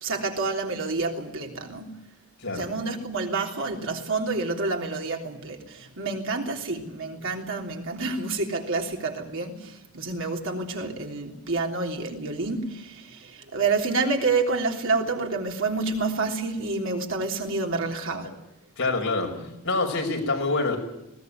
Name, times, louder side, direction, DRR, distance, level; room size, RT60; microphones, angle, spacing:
voice 1, 0.0-2.0 2.5-18.3 19.4-19.5, right 3 dB, 60° right, 1 dB, 3.4 m, -28 dB
voice 2, 18.8-19.3 19.6-20.8, left 3 dB, 60° left, 2 dB, 6.1 m, -25 dB
20.5 x 18.0 x 9.4 m, 0.84 s
head